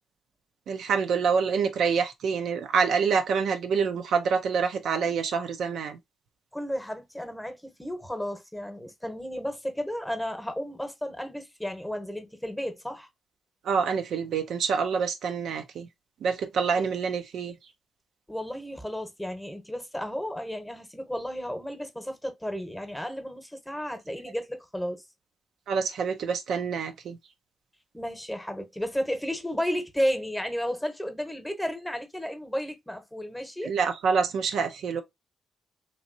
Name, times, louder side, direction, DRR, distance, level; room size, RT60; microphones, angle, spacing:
voice 1, 0.7-6.0 13.7-15.9 16.2-17.5 25.7-27.2 33.6-35.0, right 6 dB, 75° right, 0.4 m, -26 dB
voice 2, 6.5-13.1 16.8-16.9 18.3-25.0 27.9-33.7, equal, 10° left, 0.9 m, -33 dB
3.0 x 2.6 x 2.5 m
supercardioid pair, 50°, 0 cm